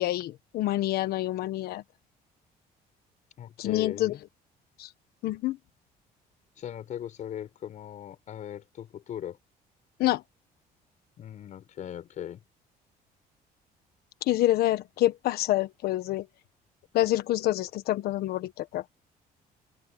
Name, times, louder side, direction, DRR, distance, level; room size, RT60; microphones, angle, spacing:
voice 1, 0.0-1.8 3.6-4.1 4.8-4.9 5.2-5.6 10.0-10.2 14.3-16.3 16.9-18.8, left 15 dB, 75° left, 1.4 m, -27 dB
voice 2, 3.4-4.2 6.6-9.4 11.2-12.4, left 10 dB, 50° left, 6.2 m, -39 dB
open air
cardioid pair, 160°, 16 cm